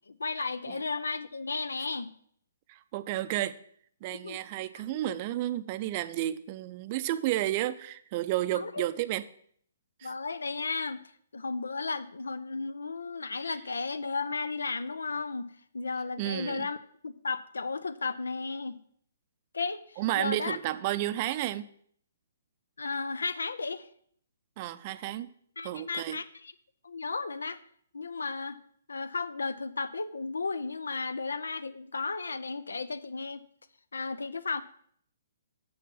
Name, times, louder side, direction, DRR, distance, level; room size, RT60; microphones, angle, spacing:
voice 1, 0.1-2.1 4.1-4.4 4.9-5.2 8.5-8.9 10.0-11.0 11.3-18.8 19.5-20.6 22.8-23.9 25.6-26.5 26.8-27.6 27.9-28.6 28.9-33.4 33.9-34.6, left 4 dB, 80° left, 0.6 m, -34 dB
voice 2, 2.7-3.6 4.0-9.3 10.0-10.1 16.2-16.7 20.0-21.7 24.6-25.3 25.6-26.2, right 14 dB, 35° right, 0.4 m, -32 dB
7.1 x 5.8 x 5.6 m
hypercardioid pair, 135°, 0 cm